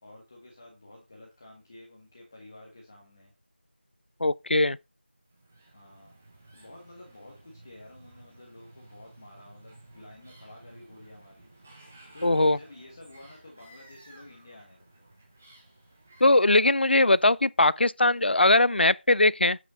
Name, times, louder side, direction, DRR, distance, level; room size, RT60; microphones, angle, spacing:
voice 1, 0.0-3.3 5.7-6.1 6.5-11.8 12.1-15.1, left 1 dB, 20° left, 1.4 m, -51 dB
voice 2, 4.2-4.8 12.2-12.6 16.2-19.6, left 2 dB, 80° left, 0.4 m, -21 dB
sound 1, 5.2-17.4, right 2 dB, 10° right, 0.5 m, -55 dB
8.2 x 5.7 x 5.0 m
figure-of-eight pair, 175°, 6 cm